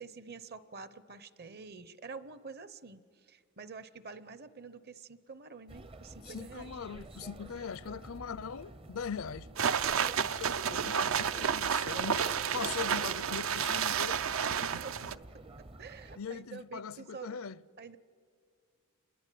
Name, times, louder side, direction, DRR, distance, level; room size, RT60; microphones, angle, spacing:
voice 1, 0.0-6.7 9.9-10.9 14.4-15.0 15.6-17.3 17.8-18.0, right 4 dB, 45° right, 0.9 m, -48 dB
sound 1, 5.7-16.2, right 2 dB, 25° right, 0.7 m, -50 dB
voice 2, 6.3-9.5 10.3-14.2 16.2-17.6, left 6 dB, 70° left, 0.6 m, -41 dB
sound 2, 9.6-15.1, right 7 dB, 70° right, 0.6 m, -31 dB
28.0 x 22.0 x 9.3 m
head